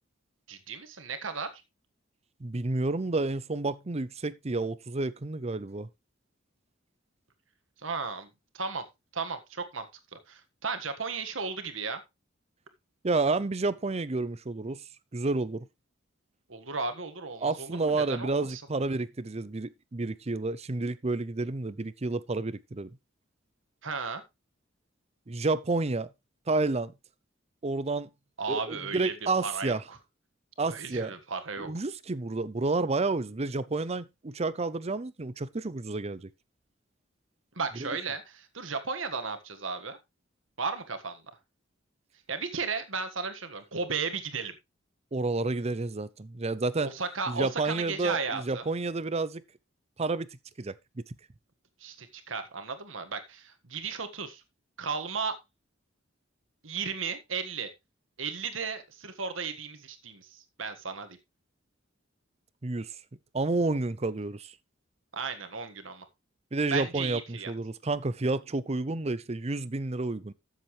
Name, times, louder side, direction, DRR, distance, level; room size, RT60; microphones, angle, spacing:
voice 1, 0.5-1.6 7.8-8.3 8.5-8.8 9.1-9.9 10.1-12.0 16.5-18.6 23.8-24.2 28.4-29.1 29.4-30.0 30.6-31.7 37.5-40.0 40.6-41.2 42.3-44.5 46.8-48.7 51.8-54.4 54.8-55.4 56.6-57.7 58.2-61.2 65.1-66.0 66.7-67.5, right 5 dB, 85° right, 1.7 m, -35 dB
voice 2, 2.4-5.9 13.0-14.8 15.1-15.7 17.4-22.9 25.3-26.1 26.5-26.9 27.6-28.1 28.5-29.8 30.6-31.1 31.6-36.3 37.8-37.9 45.1-46.9 47.3-49.4 50.0-50.3 50.6-50.8 62.6-62.9 63.3-64.5 66.5-70.3, right 3 dB, 35° right, 0.6 m, -30 dB
13.0 x 7.3 x 3.2 m
head